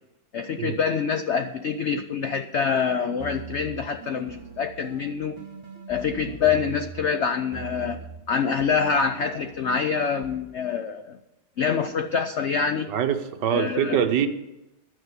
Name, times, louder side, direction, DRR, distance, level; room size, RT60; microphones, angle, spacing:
voice 1, 0.3-5.4 5.9-11.2 11.6-12.9 13.5-14.0, left 6 dB, 85° left, 8 dB, 0.6 m, -26 dB
sound 1, 3.2-7.2 7.5-10.4, right 5 dB, 35° right, 0.4 m, -42 dB
voice 2, 12.9-14.3, right 9 dB, 70° right, 8 dB, 1.5 m, -24 dB
12.0 x 6.5 x 8.1 m, 0.94 s
omnidirectional pair, 2.0 m